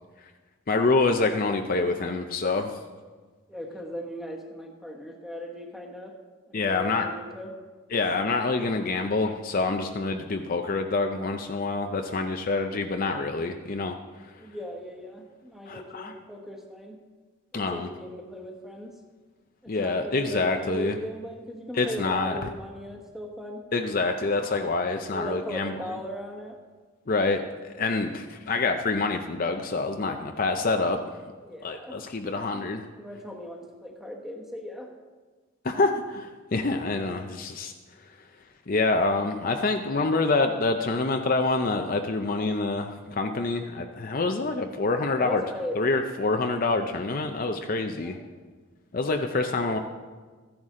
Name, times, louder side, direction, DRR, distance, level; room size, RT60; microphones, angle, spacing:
voice 1, 0.7-2.8 6.5-7.1 7.9-14.3 15.7-16.1 17.5-17.9 19.7-21.0 21.7-22.4 23.7-25.7 27.1-31.0 31.6-32.8 35.6-37.7 38.7-45.4 45.8-48.2 48.9-49.8, left 3 dB, 40° left, 5 dB, 0.5 m, -26 dB
voice 2, 3.5-6.1 6.5-7.5 14.4-17.0 17.5-18.9 19.6-23.6 25.1-26.6 31.4-32.6 32.9-34.9 45.1-45.8 47.9-48.2, equal, ahead, 1 dB, 1.2 m, -38 dB
14.0 x 10.5 x 3.7 m, 1.4 s
head